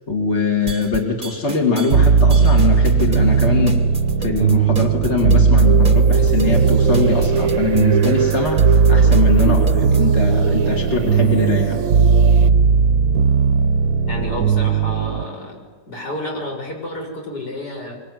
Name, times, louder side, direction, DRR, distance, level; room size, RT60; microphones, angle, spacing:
voice 1, 0.1-3.8 4.2-11.8, left 4 dB, 45° left, 0 dB, 3.2 m, -22 dB
sound 1, 0.7-10.0, right 4 dB, 30° right, 1.3 m, -32 dB
sound 2, 1.9-15.2, right 5 dB, 75° right, 1.6 m, -16 dB
sound 3, 5.6-12.5, right 7 dB, 60° right, 1.4 m, -25 dB
voice 2, 14.0-15.6 15.9-18.0, left 1 dB, 85° left, 0 dB, 7.4 m, -30 dB
24.5 x 24.0 x 9.6 m, 1.3 s
omnidirectional pair, 1.7 m